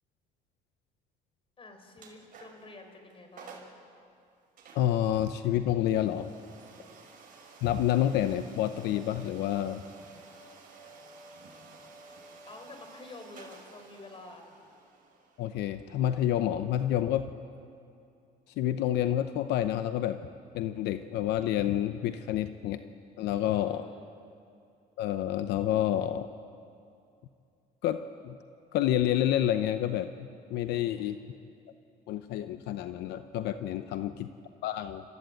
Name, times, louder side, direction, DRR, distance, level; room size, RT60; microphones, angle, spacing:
voice 1, 1.6-3.6 6.6-6.9 12.5-14.5 23.3-24.1 30.7-31.1 33.7-34.1, left 2 dB, 35° left, 5 dB, 4.2 m, -50 dB
sound 1, 2.0-2.7 3.1-3.2 3.4-3.8 4.6-17.3, right 3 dB, 55° right, 5.7 m, -52 dB
voice 2, 4.7-6.3 7.6-9.8 15.4-17.3 18.6-20.2 20.5-22.8 23.2-23.9 25.0-26.3 27.8-28.4 28.7-31.2 32.1-34.3 34.6-35.0, left 11 dB, 85° left, 10 dB, 0.8 m, -29 dB
29.0 x 14.5 x 9.1 m, 2.5 s
cardioid pair, 110°, 17 cm